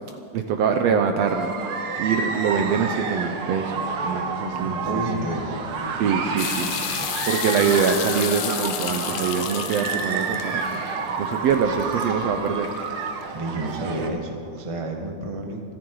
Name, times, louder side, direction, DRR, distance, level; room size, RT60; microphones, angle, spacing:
voice 1, 0.3-1.6 2.0-5.1 6.0-6.7 7.3-10.8 11.2-12.7, right 6 dB, 75° right, 6 dB, 1.6 m, -24 dB
sound 1, 1.3-14.1, right 5 dB, 55° right, 1.7 m, -30 dB
sound 2, 2.5-7.3, left 2 dB, 55° left, 3.4 m, -39 dB
voice 2, 4.6-5.5 13.3-15.6, right 2 dB, 35° right, 2 dB, 0.5 m, -30 dB
sound 3, 6.4-13.2, left 10 dB, 75° left, 2.3 m, -32 dB
28.0 x 10.5 x 4.8 m, 2.5 s
omnidirectional pair, 3.7 m